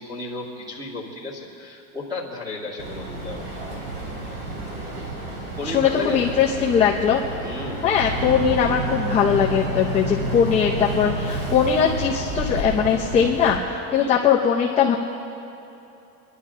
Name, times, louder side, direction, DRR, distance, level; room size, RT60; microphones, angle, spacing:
voice 1, 0.0-3.6 5.6-6.2 7.4-7.9 13.9-14.2, left 2 dB, 10° right, -3 dB, 2.3 m, -33 dB
Boat Water vehicle, 2.8-13.6, right 1 dB, 85° right, 3.8 m, -30 dB
voice 2, 5.6-7.2 7.8-15.0, left 7 dB, 15° left, -3 dB, 0.7 m, -20 dB
28.0 x 11.5 x 3.8 m, 2.9 s
supercardioid pair, 170°, 41 cm